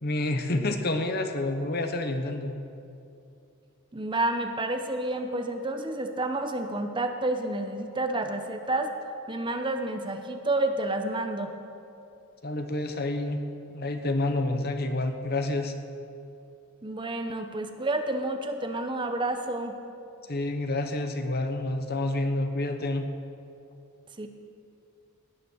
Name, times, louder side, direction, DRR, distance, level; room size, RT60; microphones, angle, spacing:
voice 1, 0.0-2.6 12.4-13.4 13.7-15.7 20.3-23.1, left 2 dB, 45° left, 6 dB, 1.0 m, -28 dB
voice 2, 3.9-8.9 9.3-11.5 16.8-19.7 24.2-24.3, right 2 dB, 20° right, 6 dB, 0.8 m, -29 dB
18.0 x 10.0 x 6.3 m, 2.7 s
head